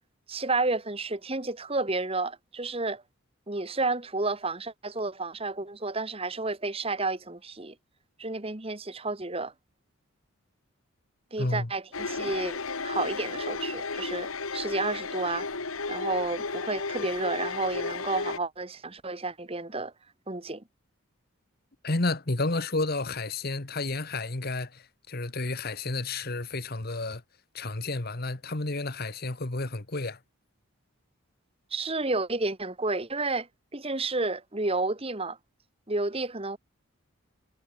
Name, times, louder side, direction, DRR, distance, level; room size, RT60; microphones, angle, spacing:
voice 1, 0.3-3.0 3.5-7.7 8.2-9.5 11.3-12.6 12.8-15.5 15.9-19.9 20.3-20.6 31.7-33.5 33.7-35.4 35.9-36.6, right 3 dB, 25° right, 1.4 m, -31 dB
voice 2, 11.4-11.7 21.8-27.2 27.5-30.2, left 2 dB, 45° left, 1.4 m, -31 dB
sound 1, 11.9-18.4, left 4 dB, 75° left, 1.9 m, -33 dB
head